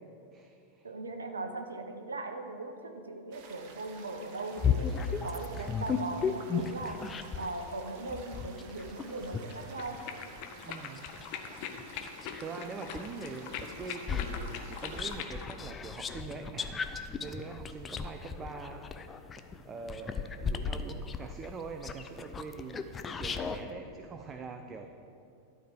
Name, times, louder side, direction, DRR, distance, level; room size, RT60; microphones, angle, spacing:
voice 1, 0.3-0.9 10.6-11.0 11.7-11.9 12.4-18.8 19.4-24.9, right 4 dB, 25° right, 6 dB, 0.5 m, -43 dB
voice 2, 0.8-7.0 7.4-10.0, right 2 dB, 75° right, 5 dB, 0.9 m, -39 dB
sound 1, 3.3-15.2, right 5 dB, 45° right, 1.0 m, -52 dB
sound 2, 4.6-7.6 8.1-12.5 12.9-23.6, left 6 dB, 20° left, 0.5 m, -35 dB
sound 3, 9.4-15.6, left 7 dB, 45° left, 0.8 m, -42 dB
12.5 x 4.7 x 7.0 m, 2.5 s
figure-of-eight pair, 90°, 0 cm